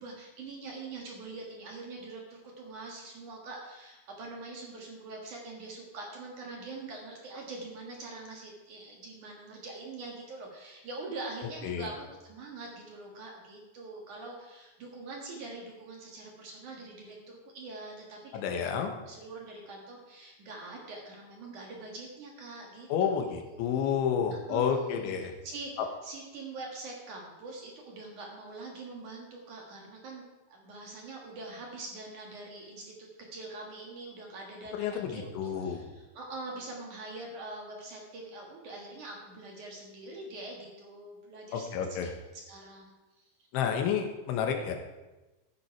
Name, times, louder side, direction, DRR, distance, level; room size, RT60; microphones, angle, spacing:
voice 1, 0.0-23.6 24.3-25.2 25.4-30.2 30.5-42.9, right 3 dB, 55° right, -1 dB, 2.7 m, -44 dB
voice 2, 18.3-18.9 22.9-25.3 25.8-25.9 34.8-35.8 41.5-42.1 43.5-44.8, left 7 dB, 85° left, 4 dB, 3.7 m, -30 dB
13.5 x 10.5 x 4.7 m, 1.1 s
omnidirectional pair, 5.3 m